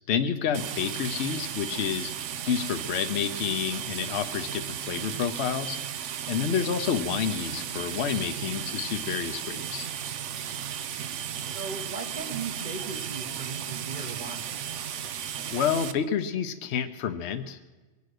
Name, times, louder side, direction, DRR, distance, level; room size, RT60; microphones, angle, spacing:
voice 1, 0.1-2.1 2.4-9.9 15.5-17.6, left 8 dB, 65° left, 8 dB, 1.0 m, -29 dB
sound 1, 0.5-15.9, right 9 dB, 80° right, 1.0 m, -35 dB
voice 2, 11.5-14.6, right 4 dB, 40° right, 0 dB, 1.3 m, -38 dB
23.5 x 8.4 x 6.4 m, 1.2 s
omnidirectional pair, 1.2 m